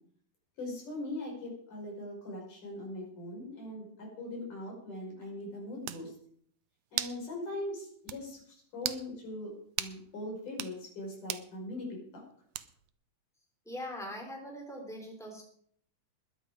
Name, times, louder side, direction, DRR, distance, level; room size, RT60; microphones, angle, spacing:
voice 1, 0.6-6.1 6.9-9.5 9.8-11.9 12.1-12.2, left 1 dB, 65° left, -1 dB, 7.0 m, -41 dB
sound 1, 5.4-5.5 5.9-6.1 7.0-7.2 7.6-7.7 8.1-8.2 8.8-9.1 9.8-10.0 10.5-10.8 11.3-11.5 12.5-12.9, right 14 dB, 75° right, 2.1 m, -36 dB
voice 2, 13.6-15.4, left 1 dB, ahead, 1 dB, 3.4 m, -41 dB
21.0 x 8.5 x 5.0 m, 0.63 s
omnidirectional pair, 3.9 m